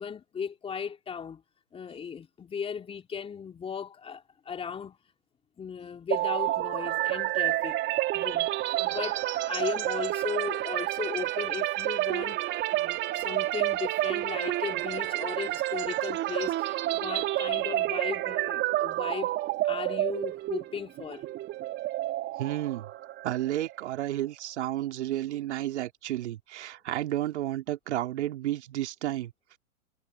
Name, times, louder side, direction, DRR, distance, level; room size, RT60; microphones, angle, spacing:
voice 1, 0.0-1.4 1.7-5.0 5.6-7.8 8.1-8.5 8.8-12.4 12.8-19.3 19.6-21.3, left 6 dB, 15° left, 3.1 m, -37 dB
sound 1, 6.1-23.9, right 16 dB, 25° right, 3.8 m, -29 dB
voice 2, 22.4-22.9 23.2-29.3, right 13 dB, 50° right, 3.3 m, -31 dB
figure-of-eight pair, 120°, 42 cm